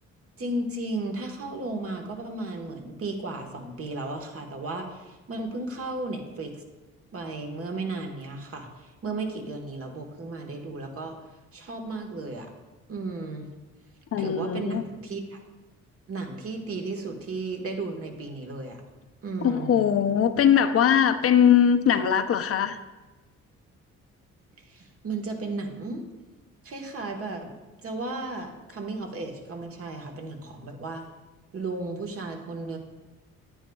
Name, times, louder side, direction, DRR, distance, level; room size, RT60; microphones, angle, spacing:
voice 1, 0.4-6.6 7.1-11.2 11.5-12.5 12.9-13.5 14.2-15.4 16.1-18.8 19.2-19.8 24.7-26.0 26.6-27.5 27.8-31.0 31.5-32.8, right 2 dB, 50° right, 3 dB, 1.4 m, -34 dB
voice 2, 14.1-14.8 19.4-22.8, left 8 dB, 50° left, 9 dB, 0.6 m, -21 dB
9.4 x 8.8 x 2.3 m, 1.2 s
cardioid pair, 90°, 30 cm